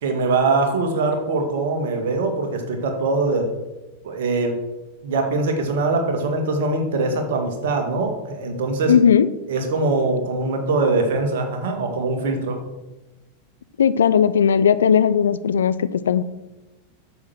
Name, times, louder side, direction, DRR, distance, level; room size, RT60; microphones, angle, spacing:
voice 1, 0.0-3.5 4.0-4.6 5.0-8.9 9.5-12.6, right 3 dB, 55° right, 4 dB, 2.2 m, -22 dB
voice 2, 8.9-9.3 13.8-16.2, left 7 dB, 65° left, 15 dB, 0.5 m, -17 dB
9.6 x 7.2 x 6.5 m, 1.1 s
figure-of-eight pair, 90°, 0 cm